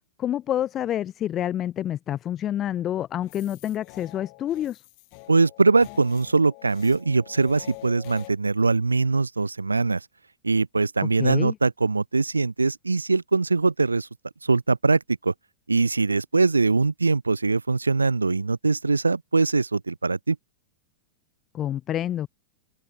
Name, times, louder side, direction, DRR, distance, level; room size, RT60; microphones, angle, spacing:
voice 1, 0.2-4.8 11.2-11.6 21.5-22.3, left 11 dB, 30° left, 0.4 m, -28 dB
sound 1, 3.2-8.3, left 32 dB, 45° left, 1.7 m, -46 dB
voice 2, 5.3-10.1 10.4-14.1 14.4-15.3 15.7-20.4, right 3 dB, 80° right, 0.4 m, -22 dB
open air
figure-of-eight pair, 90°, 0 cm